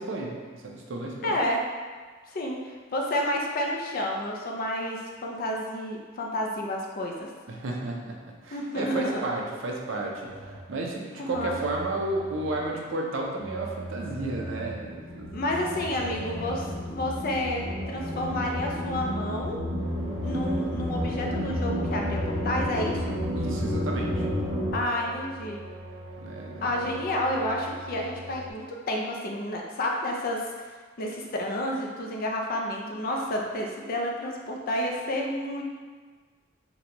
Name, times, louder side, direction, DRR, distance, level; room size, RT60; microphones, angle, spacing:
voice 1, 0.0-1.4 7.5-8.2 8.4-10.3 10.7-15.3 23.3-24.3 26.2-26.7, right 2 dB, 65° right, -1 dB, 0.5 m, -32 dB
voice 2, 1.2-1.6 2.3-7.3 8.5-9.2 11.2-11.6 15.3-19.6 20.2-23.2 24.7-25.6 26.6-35.6, left 1 dB, 45° left, 0 dB, 0.4 m, -30 dB
sound 1, 10.3-10.8 11.3-12.8 13.4-14.9 15.5-17.0 17.6-19.0 19.7-21.3 21.7-23.1 23.8-28.5, right 1 dB, 85° right, 0.9 m, -42 dB
sound 2, 13.9-24.7, left 1 dB, 50° right, 1.2 m, -31 dB
4.0 x 2.2 x 2.9 m, 1.5 s
head